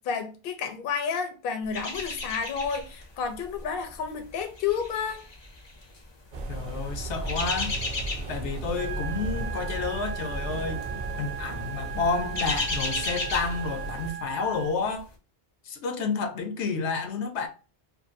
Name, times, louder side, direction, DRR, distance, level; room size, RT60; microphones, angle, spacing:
voice 1, 0.0-5.2, left 6 dB, 65° left, 0.7 m, -31 dB
sound 1, 1.7-3.0 3.3-3.6 4.3-6.0 7.0-8.5 8.8-9.1 9.4-9.6 10.5-10.9 11.2-11.4 11.9-14.2 14.5-14.6, left 3 dB, 35° left, 0.5 m, -33 dB
sound 2, 6.3-14.1, right 2 dB, 45° right, 0.6 m, -35 dB
voice 2, 6.5-7.7 8.3-10.9 11.2-15.1 15.6-17.5, left 4 dB, 85° left, 0.9 m, -30 dB
sound 3, 8.8-14.7, right 9 dB, 80° right, 0.8 m, -38 dB
2.6 x 2.5 x 2.4 m
omnidirectional pair, 1.1 m